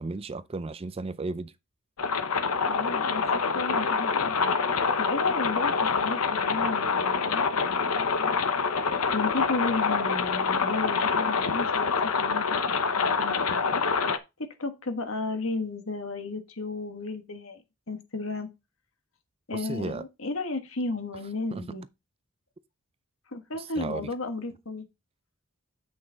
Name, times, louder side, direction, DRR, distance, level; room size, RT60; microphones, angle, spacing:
voice 1, 0.0-1.5 19.5-20.0 21.5-21.8 23.6-24.1, right 3 dB, 25° right, 0.4 m, -34 dB
sound 1, 2.0-14.2, left 5 dB, 80° left, 0.9 m, -26 dB
voice 2, 2.7-4.4 5.0-8.5 9.1-13.8 14.4-17.6 17.9-18.5 19.5-21.8 23.3-24.9, left 3 dB, 65° left, 1.5 m, -34 dB
8.3 x 6.3 x 3.9 m
head